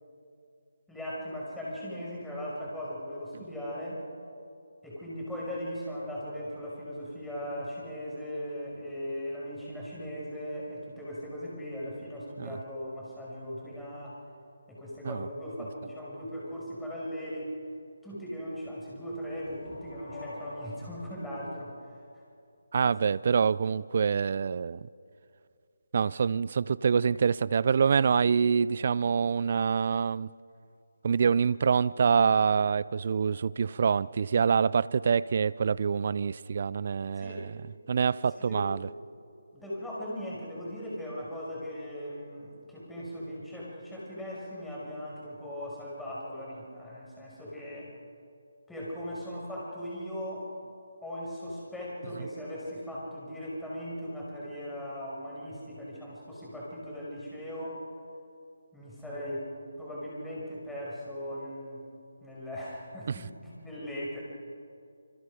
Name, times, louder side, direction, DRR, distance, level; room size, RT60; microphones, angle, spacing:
voice 1, 0.9-4.0 4.8-14.2 14.7-17.5 18.0-21.7 37.2-37.5 38.4-38.9 39.5-47.9 48.7-50.5 51.0-57.8 58.7-59.5 59.8-61.8 62.2-64.2, equal, 5° left, -6 dB, 5.7 m, -38 dB
sound 1, 19.1-22.7, left 1 dB, 40° left, 7.8 m, -46 dB
voice 2, 22.7-24.9 25.9-30.3 31.0-37.5 37.9-38.9 63.1-63.2, right 6 dB, 45° right, 20 dB, 0.5 m, -26 dB
27.0 x 26.0 x 5.0 m, 2.4 s
figure-of-eight pair, 155°, 0 cm